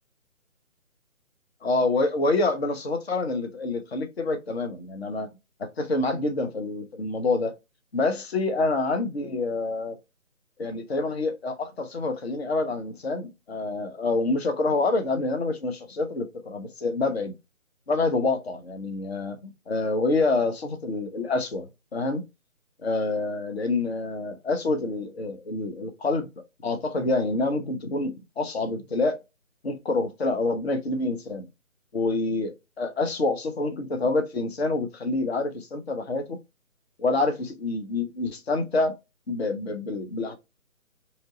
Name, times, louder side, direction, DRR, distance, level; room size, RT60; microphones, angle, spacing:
voice 1, 1.6-5.3 5.6-7.5 7.9-10.0 10.6-17.3 17.9-19.4 19.7-22.2 22.8-26.3 26.6-29.2 29.6-31.5 31.9-36.4 37.0-38.9 39.3-40.4, left 3 dB, 50° left, 0.5 m, -27 dB
2.8 x 2.0 x 2.6 m
figure-of-eight pair, 150°, 41 cm